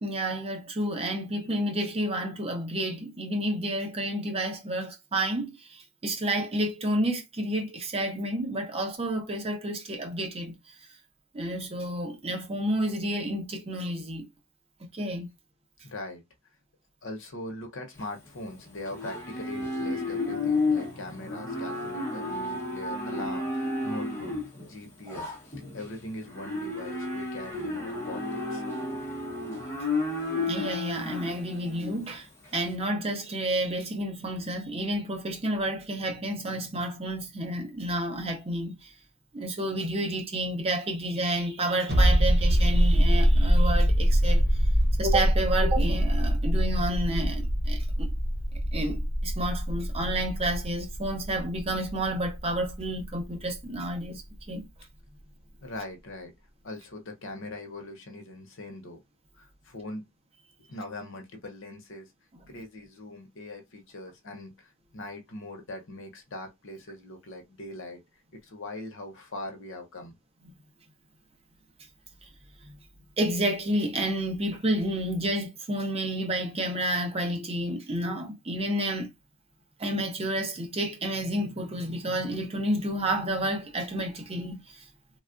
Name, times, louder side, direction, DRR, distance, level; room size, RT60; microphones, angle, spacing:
voice 1, 0.0-10.5 11.3-14.3 14.9-15.3 25.1-25.3 30.5-32.3 32.5-38.9 39.3-44.4 45.0-48.1 48.5-54.2 54.5-54.7 70.4-70.5 72.6-72.7 73.2-79.1 79.8-84.8, right 1 dB, 30° right, 0.6 m, -30 dB
voice 2, 15.8-16.2 17.0-24.3 24.7-25.3 25.7-28.6 55.6-56.3 56.6-59.0 59.3-60.0 60.7-62.1 62.5-68.0 68.3-70.1, left 1 dB, 65° left, 0.8 m, -41 dB
Livestock farm animals working animals, 18.0-32.7, left 2 dB, 10° left, 1.0 m, -32 dB
sound 1, 41.9-53.2 53.5-53.6, equal, 50° right, 1.0 m, -24 dB
3.2 x 2.3 x 2.4 m
head